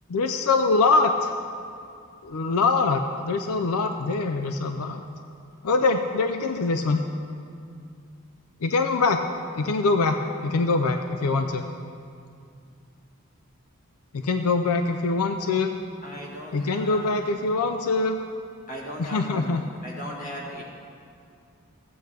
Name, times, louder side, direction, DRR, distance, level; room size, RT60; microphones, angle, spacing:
voice 1, 0.1-1.3 2.2-5.0 5.6-7.0 8.6-9.2 9.5-11.6 14.2-15.7 16.5-18.2 19.0-19.6, left 3 dB, 85° left, 6 dB, 0.5 m, -23 dB
voice 2, 16.0-17.2 18.7-20.6, equal, 35° left, -3 dB, 1.7 m, -38 dB
14.5 x 8.5 x 3.4 m, 2.4 s
head